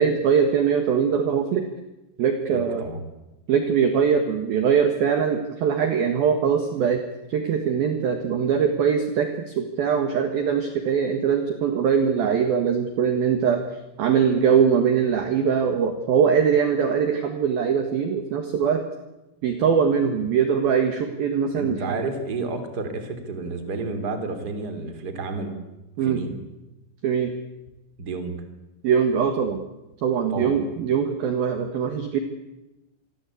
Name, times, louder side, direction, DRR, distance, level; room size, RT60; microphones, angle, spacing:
voice 1, 0.0-1.6 2.2-2.8 3.5-7.0 7.3-13.6 14.0-18.8 19.4-21.9 26.0-26.2 27.0-27.3 28.8-29.6 30.0-32.2, right 7 dB, 60° right, 6 dB, 2.8 m, -22 dB
voice 2, 2.5-3.0 21.5-25.6 26.0-26.4 28.0-28.4 30.3-30.6, right 3 dB, 25° right, 8 dB, 2.9 m, -30 dB
27.5 x 23.0 x 8.6 m, 1.0 s
omnidirectional pair, 6.0 m